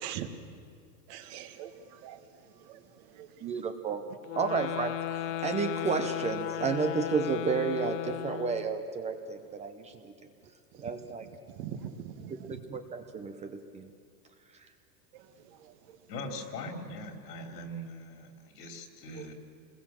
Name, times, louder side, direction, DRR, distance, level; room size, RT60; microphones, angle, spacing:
voice 1, 1.1-2.2 2.6-3.5 4.4-4.5 10.7-10.9 11.2-12.6 15.1-15.7 19.1-19.3, right 10 dB, 45° right, 8 dB, 1.7 m, -43 dB
voice 2, 3.4-4.1 4.4-10.1 10.8-11.3 12.3-13.9, right 5 dB, 15° right, 7 dB, 0.7 m, -32 dB
sound 1, 4.2-8.8, left 13 dB, 50° left, 0.6 m, -35 dB
voice 3, 16.1-19.3, left 1 dB, 80° left, 5 dB, 3.9 m, -41 dB
27.5 x 21.0 x 7.4 m, 2.2 s
supercardioid pair, 155°, 48 cm